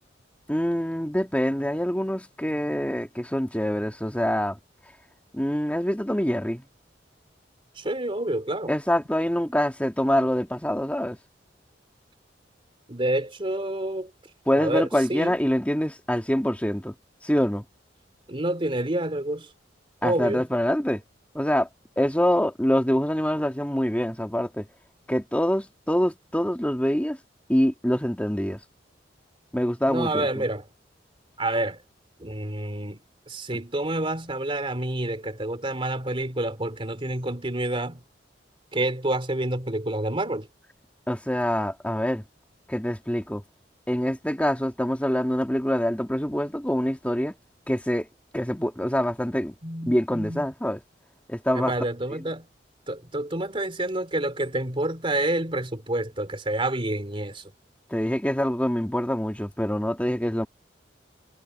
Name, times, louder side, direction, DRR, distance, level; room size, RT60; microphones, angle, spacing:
voice 1, 0.5-4.6 5.3-6.6 8.7-11.2 14.5-16.9 17.2-17.6 20.0-21.0 21.3-21.7 22.0-24.6 25.1-27.2 27.5-28.6 29.5-30.4 33.5-33.6 41.1-42.2 42.7-43.4 43.9-47.4 47.7-48.1 48.3-49.6 49.9-50.8 51.3-51.7 57.9-60.5, equal, 10° left, 2.2 m, -25 dB
voice 2, 7.8-8.7 12.9-14.1 14.5-15.4 18.3-19.5 20.0-20.5 29.9-30.7 31.4-31.8 32.2-33.0 33.3-38.0 38.7-40.5 49.6-50.4 51.5-52.5 52.9-57.4, right 1 dB, 30° right, 3.3 m, -28 dB
head